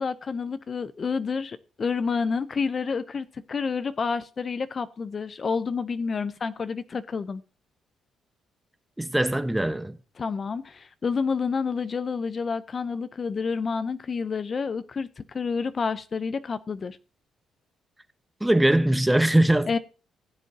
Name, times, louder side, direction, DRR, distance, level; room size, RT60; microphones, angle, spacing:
voice 1, 0.0-7.4 10.2-17.0 19.7-19.8, left 5 dB, 40° left, 0.5 m, -29 dB
voice 2, 9.0-10.0 18.4-19.7, right 1 dB, 10° right, 0.9 m, -21 dB
15.5 x 7.6 x 2.7 m
cardioid pair, 90°, 0 cm